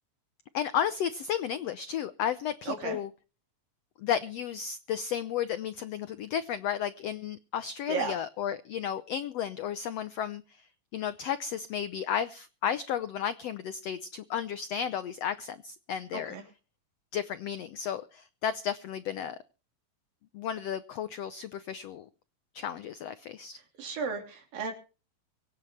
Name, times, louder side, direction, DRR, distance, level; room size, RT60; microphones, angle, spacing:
voice 1, 0.5-3.1 4.0-10.6 10.9-16.4 17.1-19.4 20.3-22.0 22.5-23.6, left 9 dB, 80° left, 12 dB, 1.4 m, -33 dB
voice 2, 2.7-3.0 7.9-8.2 16.1-16.4 23.8-24.7, right 5 dB, 80° right, 5 dB, 4.8 m, -34 dB
24.5 x 8.8 x 4.4 m, 0.35 s
omnidirectional pair, 3.9 m